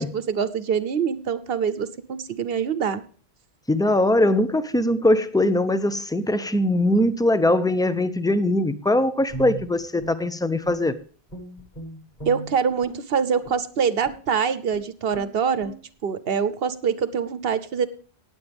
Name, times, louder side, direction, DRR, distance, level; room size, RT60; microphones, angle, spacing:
voice 1, 0.0-3.0 12.3-15.7 16.0-17.9, right 6 dB, 65° right, 14 dB, 1.0 m, -24 dB
voice 2, 3.7-11.0, left 1 dB, 5° left, 12 dB, 0.5 m, -21 dB
Guitar, 9.3-11.0 11.3-13.0 13.4-13.6 14.0-14.3 14.7-14.8 15.1-15.3 15.6-15.8, right 2 dB, 40° left, 8.0 m, -38 dB
19.0 x 8.2 x 3.5 m, 0.41 s
omnidirectional pair, 1.1 m